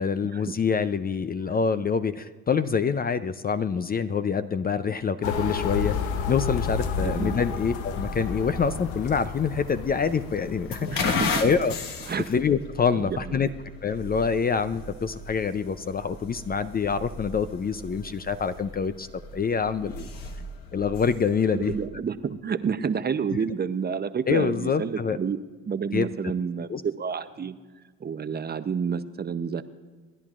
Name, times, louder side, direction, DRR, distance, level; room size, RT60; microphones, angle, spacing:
voice 1, 0.0-6.0 6.3-11.1 11.4-11.8 12.3-13.5 13.8-19.1 19.3-20.1 20.7-21.7 24.3-25.2 25.9-26.1 26.7-26.8, left 6 dB, 25° left, 12 dB, 0.5 m, -26 dB
sound 1, 5.2-11.7, left 6 dB, 90° left, 0.9 m, -32 dB
sound 2, 5.7-21.9, left 3 dB, 70° left, 1.4 m, -36 dB
voice 2, 7.0-7.4 10.8-11.4 12.1-12.3 13.0-13.4 21.5-25.4 25.7-27.6 28.0-29.6, right 6 dB, 30° right, 11 dB, 0.7 m, -29 dB
27.0 x 10.5 x 2.5 m, 1.5 s
supercardioid pair, 75°, 35 cm